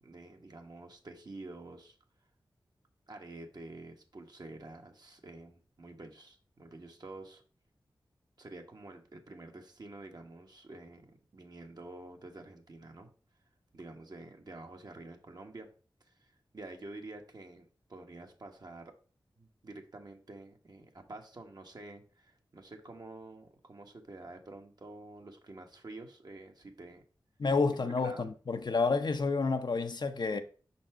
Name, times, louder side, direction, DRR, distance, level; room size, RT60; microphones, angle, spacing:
voice 1, 0.0-2.0 3.1-7.4 8.4-13.1 13.7-15.7 16.0-18.9 19.4-27.0 27.8-28.3, right 2 dB, 55° right, 1.2 m, -49 dB
voice 2, 27.4-30.4, left 4 dB, 60° left, 0.6 m, -29 dB
5.7 x 4.1 x 4.4 m
cardioid pair, 45°, 8 cm